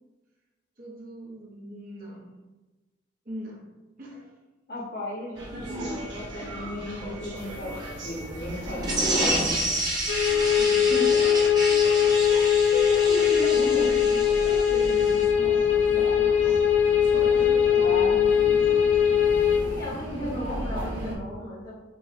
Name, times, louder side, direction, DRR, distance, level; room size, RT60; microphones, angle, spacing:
voice 1, 0.8-2.3 3.2-3.6 4.0-4.3 5.7-6.1 6.4-6.6 10.3-10.9 14.4-16.6 17.1-19.3, right 1 dB, 45° right, -3 dB, 0.9 m, -40 dB
voice 2, 4.7-7.7 8.0-9.6 10.9-11.7 12.3-14.0 16.0-16.1 17.3-18.1 19.6-21.7, left 1 dB, 55° left, -12 dB, 1.4 m, -35 dB
sound 1, 5.3-21.1, equal, 75° right, 1.0 m, -36 dB
sound 2, 8.8-15.2, right 1 dB, 20° right, 0.7 m, -30 dB
sound 3, 10.1-19.6, left 8 dB, 80° left, 0.5 m, -21 dB
6.0 x 2.4 x 2.6 m, 1.2 s
head